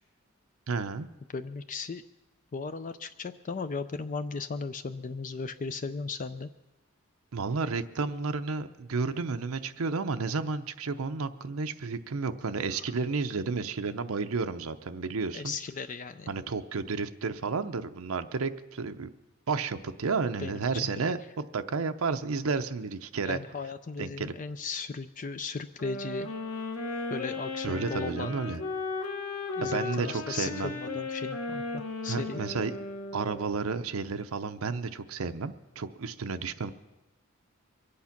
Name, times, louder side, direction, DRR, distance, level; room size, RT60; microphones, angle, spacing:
voice 1, 0.7-1.1 7.3-15.5 16.3-19.1 19.5-21.2 21.5-23.4 24.0-24.3 27.6-28.6 29.6-30.8 32.1-32.7 33.1-36.7, right 4 dB, 80° right, 9 dB, 0.7 m, -32 dB
voice 2, 1.3-2.0 2.5-6.5 12.7-12.8 15.3-16.3 20.4-20.9 23.2-26.3 27.1-28.4 29.6-32.4, left 4 dB, 40° left, 10 dB, 0.4 m, -36 dB
sound 1, 25.8-33.8, left 3 dB, 85° left, 1.8 m, -36 dB
23.0 x 8.5 x 5.8 m, 1.0 s
head